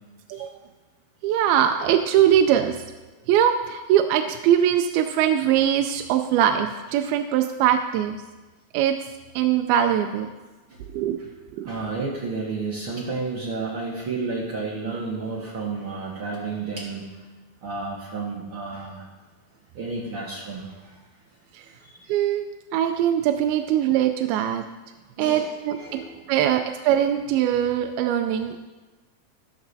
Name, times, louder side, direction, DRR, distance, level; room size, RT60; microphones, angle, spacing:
voice 1, 1.2-2.8 3.3-8.2 8.7-9.0 9.4-10.3 10.9-11.2 11.6-11.7 21.5-21.7 22.1-22.5 22.7-24.6 25.2-26.0 26.3-28.6, right 10 dB, 80° right, 6 dB, 2.3 m, -21 dB
voice 2, 11.6-17.1 17.6-19.1 19.7-21.0 21.6-22.1 25.2-26.6, right 4 dB, 55° right, -4 dB, 1.5 m, -32 dB
13.0 x 12.5 x 2.7 m, 1.2 s
omnidirectional pair, 4.5 m